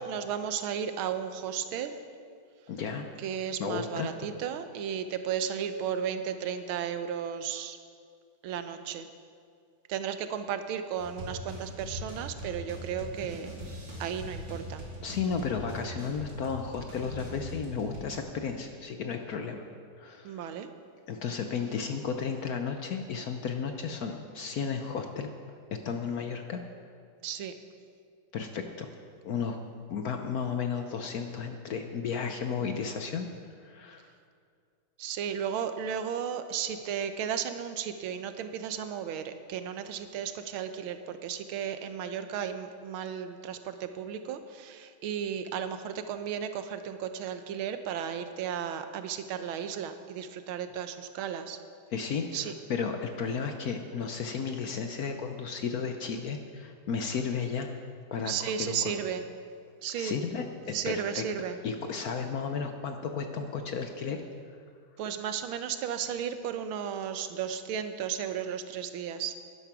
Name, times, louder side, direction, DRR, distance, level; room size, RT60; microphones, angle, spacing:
voice 1, 0.0-2.0 3.2-7.8 8.4-9.1 9.9-13.5 14.0-14.8 20.2-20.7 27.2-27.5 35.0-51.6 52.3-52.5 58.3-59.2 59.8-60.2 60.7-61.6 65.0-69.3, right 8 dB, 75° right, 9 dB, 1.5 m, -34 dB
voice 2, 2.7-3.1 3.6-4.1 15.0-19.6 20.0-20.5 21.1-25.3 25.8-26.6 28.3-28.9 29.2-29.6 29.9-33.3 33.6-34.1 51.9-57.7 58.1-58.8 60.0-61.2 61.6-64.2, left 6 dB, 70° left, 6 dB, 0.9 m, -33 dB
sound 1, 11.0-18.2, equal, 60° right, 3.4 m, -41 dB
11.0 x 11.0 x 5.9 m, 2.2 s
omnidirectional pair, 2.4 m